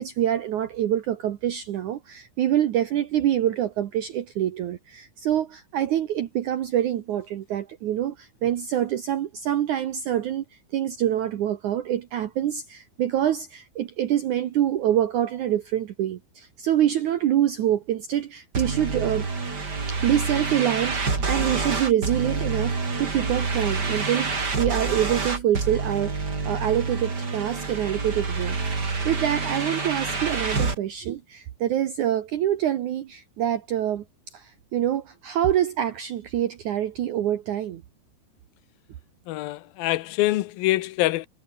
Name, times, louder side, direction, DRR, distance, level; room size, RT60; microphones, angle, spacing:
voice 1, 0.0-10.4 10.7-19.3 19.9-34.0 34.3-37.8, right 11 dB, 85° right, 1.7 m, -26 dB
sound 1, 18.5-30.8, right 4 dB, 25° right, 3.3 m, -27 dB
voice 2, 39.3-41.3, left 17 dB, 80° left, 2.1 m, -25 dB
omnidirectional pair, 5.5 m